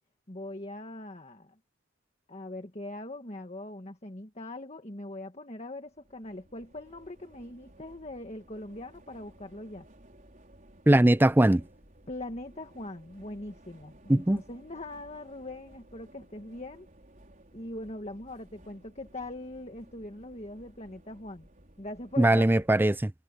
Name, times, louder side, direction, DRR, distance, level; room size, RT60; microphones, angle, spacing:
voice 1, 0.3-1.6 2.3-9.9 12.1-16.9 17.5-21.5 21.8-22.4, left 1 dB, 30° left, 1.8 m, -41 dB
sound 1, 5.8-22.7, right 1 dB, 40° right, 5.2 m, -57 dB
voice 2, 10.9-11.6 14.1-14.4 22.2-23.1, right 1 dB, 10° right, 0.4 m, -21 dB
head